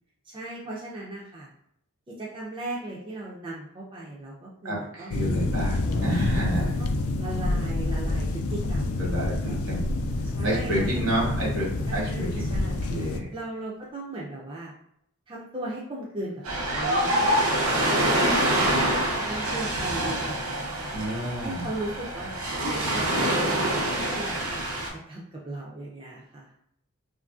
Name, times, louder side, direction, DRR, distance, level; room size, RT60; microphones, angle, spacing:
voice 1, 0.2-1.5 2.1-5.1 6.4-9.6 10.4-11.0 11.9-12.8 13.3-14.7 15.3-18.7 19.2-21.0 21.4-22.3 22.7-26.5, right 2 dB, 25° right, -4 dB, 0.3 m, -37 dB
voice 2, 4.6-6.7 9.0-9.8 10.4-13.3 20.9-21.7, equal, 70° right, -3 dB, 1.1 m, -30 dB
sound 1, 5.1-13.2, left 2 dB, 85° left, 0.3 m, -28 dB
sound 2, 5.4-9.2 9.5-9.7 10.0-10.5 11.6-11.7 12.7-12.8, left 1 dB, 65° left, 0.8 m, -38 dB
Ocean, 16.4-24.9, right 1 dB, 85° right, 0.7 m, -26 dB
2.9 x 2.5 x 2.3 m, 0.72 s
head